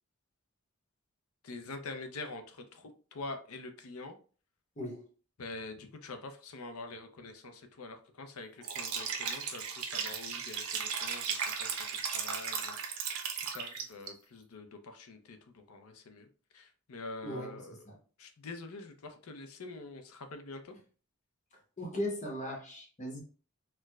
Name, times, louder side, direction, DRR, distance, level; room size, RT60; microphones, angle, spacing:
voice 1, 1.4-4.2 5.4-17.8 18.2-20.7, left 3 dB, 80° left, 7 dB, 0.6 m, -46 dB
voice 2, 4.8-5.1 17.2-17.6 17.9-18.0 21.8-23.2, left 1 dB, 35° left, 0 dB, 0.8 m, -38 dB
Liquid, 8.6-14.1, right 6 dB, 85° right, 0.6 m, -36 dB
4.4 x 2.1 x 2.3 m, 0.39 s
head